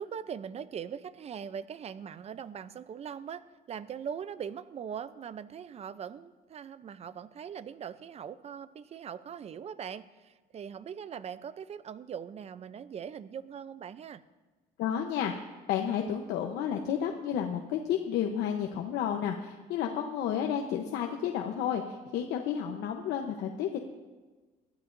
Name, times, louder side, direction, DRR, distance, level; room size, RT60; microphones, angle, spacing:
voice 1, 0.0-14.2, right 8 dB, 40° right, 14 dB, 0.6 m, -41 dB
voice 2, 14.8-23.8, left 9 dB, 80° left, 2 dB, 1.0 m, -31 dB
21.5 x 13.5 x 2.7 m, 1.3 s
cardioid pair, 110°, 17 cm